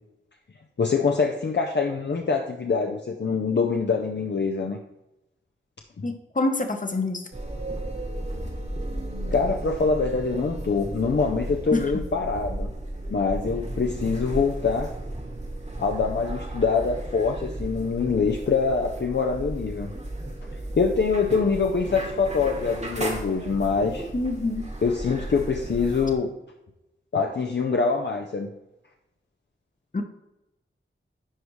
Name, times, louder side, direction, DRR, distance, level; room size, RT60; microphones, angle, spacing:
voice 1, 0.8-4.8 6.0-6.1 9.3-12.7 13.1-14.9 15.8-19.9 20.8-24.1 24.8-26.3 27.1-28.5, left 5 dB, 60° left, 3 dB, 0.6 m, -24 dB
voice 2, 6.0-7.2 11.7-11.8 24.1-24.7 29.9-30.0, left 2 dB, 40° left, 5 dB, 1.0 m, -26 dB
sound 1, 7.3-26.1, right 1 dB, 35° right, 1.3 m, -34 dB
10.0 x 4.9 x 3.1 m, 0.90 s
wide cardioid pair, 75°, 21 cm